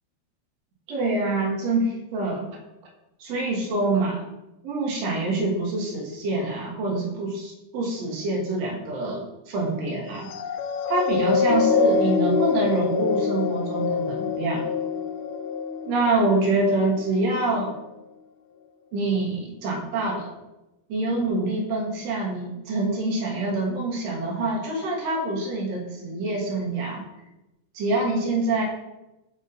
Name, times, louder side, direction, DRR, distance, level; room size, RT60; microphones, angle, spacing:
voice 1, 0.9-2.6 3.2-4.2 4.6-10.3 10.9-14.6 15.8-17.7 18.9-20.3 20.9-27.0 27.7-28.6, right 2 dB, 55° right, -1 dB, 2.0 m, -26 dB
sound 1, 10.2-16.9 17.5-17.6, left 5 dB, 80° left, 2.3 m, -25 dB
5.4 x 5.0 x 4.0 m, 0.96 s
omnidirectional pair, 4.7 m